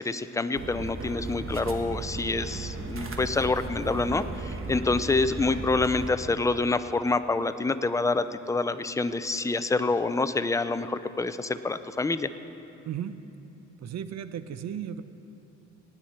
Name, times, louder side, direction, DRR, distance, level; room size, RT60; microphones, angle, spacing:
voice 1, 0.0-12.3, left 3 dB, 10° left, 11 dB, 0.4 m, -27 dB
sound 1, 0.5-6.1, right 3 dB, 45° right, 1.2 m, -36 dB
voice 2, 13.8-15.0, right 9 dB, 60° right, 12 dB, 0.7 m, -35 dB
19.0 x 9.1 x 4.3 m, 2.9 s
cardioid pair, 90°, 30 cm